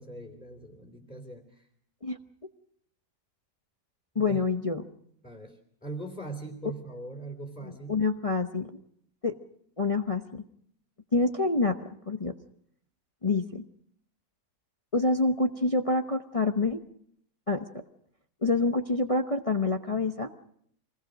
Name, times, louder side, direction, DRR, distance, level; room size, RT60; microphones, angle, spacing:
voice 1, 0.0-1.7 4.1-4.4 5.2-8.0, right 2 dB, 5° left, 0 dB, 3.1 m, -41 dB
voice 2, 4.1-4.8 7.9-8.8 9.2-9.4 9.8-10.4 11.1-11.8 12.1-12.3 13.2-13.6 14.9-16.8 17.5-17.7 18.4-20.3, left 3 dB, 30° left, 5 dB, 0.8 m, -26 dB
25.0 x 20.0 x 6.4 m, 0.68 s
omnidirectional pair, 1.7 m